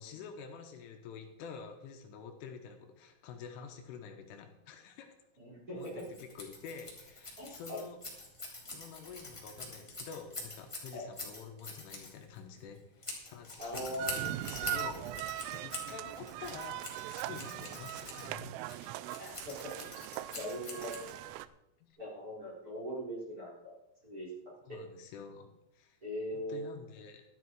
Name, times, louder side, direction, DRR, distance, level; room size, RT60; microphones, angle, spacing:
voice 1, 0.0-5.1 5.7-8.0 8.7-18.5 21.8-21.9 24.6-26.0 26.3-27.2, left 6 dB, 80° left, 4 dB, 3.6 m, -48 dB
voice 2, 5.4-6.1 7.4-7.8 10.9-11.1 13.6-14.2 15.6-15.9 19.2-19.8 20.3-21.1 22.0-23.7 24.0-24.8 26.0-26.6, equal, 20° right, -6 dB, 4.1 m, -41 dB
Scissors, 5.8-21.4, left 2 dB, 10° left, 2.1 m, -45 dB
sound 1, 14.0-21.5, right 15 dB, 85° right, 3.1 m, -40 dB
13.0 x 12.0 x 4.7 m, 0.88 s
omnidirectional pair, 5.8 m